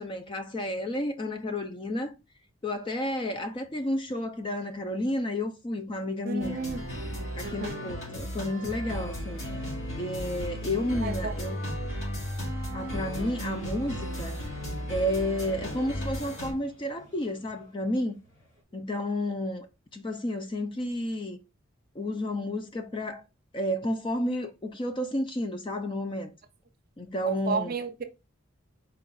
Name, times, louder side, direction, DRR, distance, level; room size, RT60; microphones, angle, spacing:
voice 1, 0.0-2.1 2.6-6.6 7.4-9.4 10.0-11.6 12.7-14.4 14.9-18.1 18.7-19.7 19.9-21.4 21.9-23.2 23.5-26.3 27.0-27.8, left 1 dB, 25° left, 0.4 m, -31 dB
voice 2, 6.2-6.8 7.4-7.9 11.0-11.4 27.3-28.0, right 4 dB, 45° right, 0.5 m, -32 dB
sound 1, 6.4-16.5, equal, 90° left, 2.2 m, -35 dB
sound 2, 10.2-18.6, left 1 dB, 60° left, 2.4 m, -55 dB
4.4 x 2.4 x 3.9 m
head